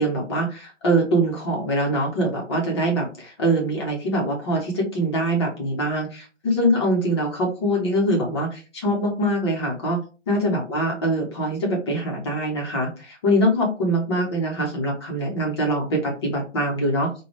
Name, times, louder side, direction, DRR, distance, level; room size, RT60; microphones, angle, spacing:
voice 1, 0.0-10.0 10.3-17.2, right 1 dB, 20° left, -1 dB, 0.8 m, -23 dB
4.9 x 2.2 x 3.0 m, 0.34 s
figure-of-eight pair, 140°, 37 cm